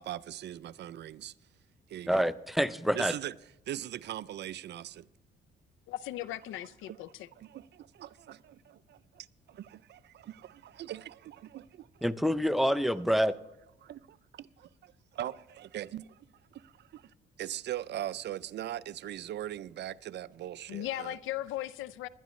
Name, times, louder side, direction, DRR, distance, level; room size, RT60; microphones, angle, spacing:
voice 1, 0.0-1.3 1.9-2.3 2.9-3.3 3.7-5.1 6.9-7.0 7.4-11.9 13.8-16.3 16.5-17.1 17.4-21.2, right 12 dB, 60° right, 0.4 m, -41 dB
voice 2, 2.1-3.1 12.0-13.3, equal, ahead, 0.5 m, -27 dB
voice 3, 5.9-7.3 20.7-22.1, left 14 dB, 90° left, 0.5 m, -37 dB
20.0 x 11.5 x 3.1 m
cardioid pair, 90°, 20 cm